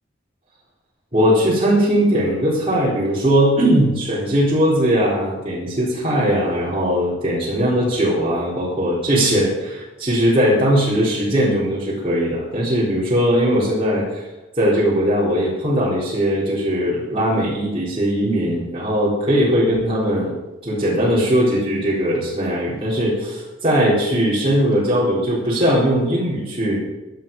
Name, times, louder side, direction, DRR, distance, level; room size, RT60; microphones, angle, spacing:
voice 1, 1.1-14.2 14.6-20.3 20.6-26.8, equal, 30° right, -8 dB, 4.0 m, -19 dB
16.5 x 12.0 x 5.4 m, 1.1 s
head